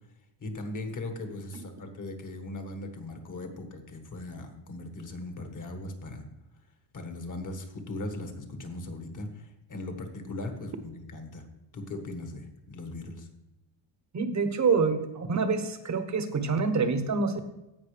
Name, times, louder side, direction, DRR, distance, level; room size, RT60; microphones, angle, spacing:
voice 1, 0.4-6.3 6.9-11.5 11.7-13.3, left 2 dB, 40° left, 6 dB, 1.5 m, -39 dB
voice 2, 14.1-17.6, right 4 dB, 35° right, 8 dB, 1.0 m, -27 dB
16.5 x 5.5 x 3.3 m, 0.96 s
cardioid pair, 135°, 49 cm